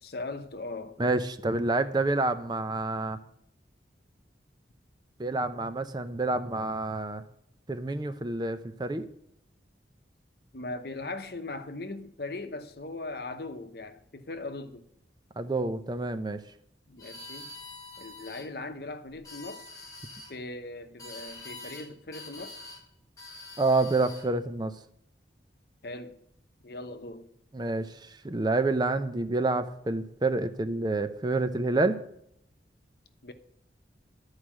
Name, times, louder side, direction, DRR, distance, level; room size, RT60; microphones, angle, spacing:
voice 1, 0.0-1.0 10.5-14.9 16.9-17.6 18.0-19.7 20.3-22.6 25.8-26.2 26.6-27.3 33.2-33.3, left 2 dB, 60° left, 0.9 m, -39 dB
voice 2, 1.0-3.2 5.2-7.2 7.7-9.1 15.4-16.4 23.6-24.7 27.5-27.9 28.2-32.0, right 2 dB, 25° right, 0.5 m, -28 dB
sound 1, 17.0-18.5 19.1-20.3 21.0-21.9 22.1-22.8 23.2-24.3, left 2 dB, 20° left, 3.0 m, -45 dB
11.0 x 4.8 x 7.3 m
head